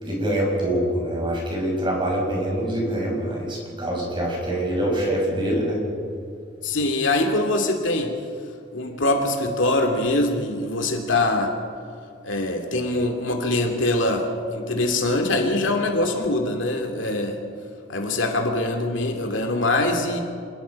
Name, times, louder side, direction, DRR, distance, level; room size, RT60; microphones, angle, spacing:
voice 1, 0.0-5.8, right 1 dB, 25° right, -2 dB, 6.3 m, -25 dB
voice 2, 6.6-8.1 8.7-11.5 12.2-17.4 17.9-20.2, left 2 dB, 75° left, 4 dB, 2.6 m, -23 dB
26.0 x 20.5 x 5.4 m, 2.3 s
head